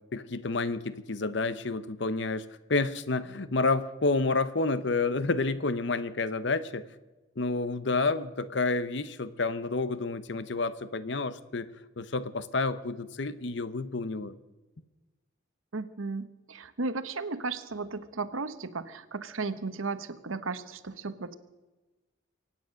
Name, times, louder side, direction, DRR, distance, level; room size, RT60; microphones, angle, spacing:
voice 1, 0.1-6.9 7.4-11.7 12.0-14.4, left 3 dB, 60° left, 15 dB, 0.8 m, -29 dB
voice 2, 15.7-21.3, right 3 dB, 90° right, 13 dB, 1.0 m, -35 dB
24.0 x 9.2 x 6.3 m, 1.1 s
head